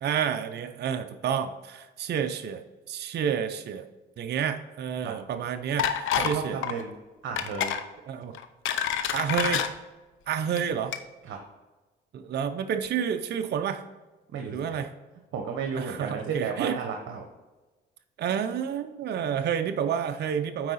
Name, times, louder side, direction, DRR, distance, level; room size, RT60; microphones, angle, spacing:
voice 1, 0.0-2.6 2.9-3.9 4.2-6.6 8.1-8.4 9.1-9.6 10.3-11.0 12.1-13.8 14.5-14.9 15.8-16.8 18.2-20.7, right 8 dB, 55° right, 7 dB, 0.5 m, -29 dB
sound 1, 5.8-6.4 6.6-6.8 7.4-7.8 8.3-9.7 10.4-10.6 10.9-11.0, left 9 dB, 80° left, 0.7 m, -27 dB
voice 2, 6.1-6.9 7.2-7.8 11.2-11.4 14.3-14.8 15.3-17.3, right 6 dB, 75° right, 3 dB, 1.0 m, -33 dB
8.8 x 4.7 x 4.1 m, 1.2 s
cardioid pair, 90°, 20 cm